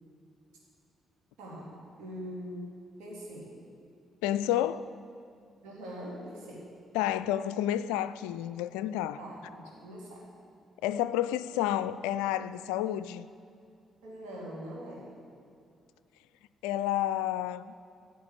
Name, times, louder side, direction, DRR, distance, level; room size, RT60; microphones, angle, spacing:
voice 1, 1.4-3.5 5.6-6.7 9.2-10.2 14.0-15.1, equal, 65° right, 3.7 m, -43 dB
voice 2, 4.2-4.9 6.9-9.2 10.8-13.3 16.6-17.7, left 12 dB, 70° left, 0.3 m, -30 dB
14.5 x 8.0 x 8.6 m
figure-of-eight pair, 40°, 0 cm